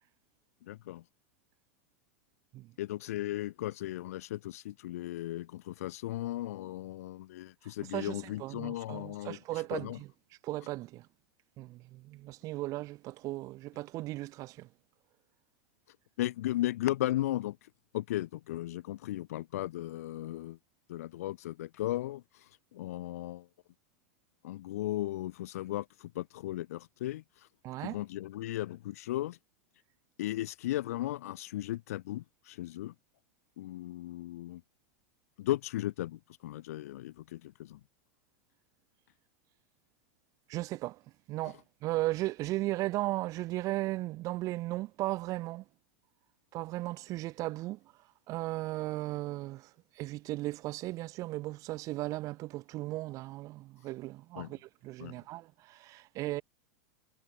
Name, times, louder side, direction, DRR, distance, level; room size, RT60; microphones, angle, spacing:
voice 1, 0.6-1.0 2.8-10.0 16.2-17.6 17.9-20.6 20.9-23.5 24.4-27.2 27.8-29.4 30.2-32.9 33.6-34.6 35.4-37.8 54.4-54.5 55.0-55.2, left 15 dB, 70° left, 0.7 m, -36 dB
voice 2, 7.9-10.1 10.4-11.1 11.6-14.7 27.6-28.0 40.5-41.0 41.3-45.6 46.5-47.8 48.3-49.7 50.0-56.4, right 18 dB, 40° right, 0.5 m, -36 dB
hypercardioid pair, 100°, 8 cm